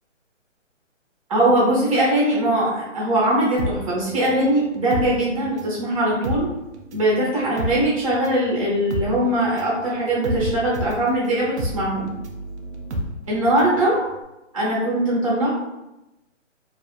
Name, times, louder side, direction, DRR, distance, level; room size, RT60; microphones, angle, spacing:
voice 1, 1.3-6.5 6.9-12.1 13.3-14.0 14.5-15.5, right 1 dB, 30° right, -6 dB, 0.7 m, -21 dB
sound 1, 3.6-5.8 6.1-13.8 14.1-14.2, equal, 65° right, 0.5 m, -30 dB
2.4 x 2.2 x 2.3 m, 0.94 s
hypercardioid pair, 170°, 38 cm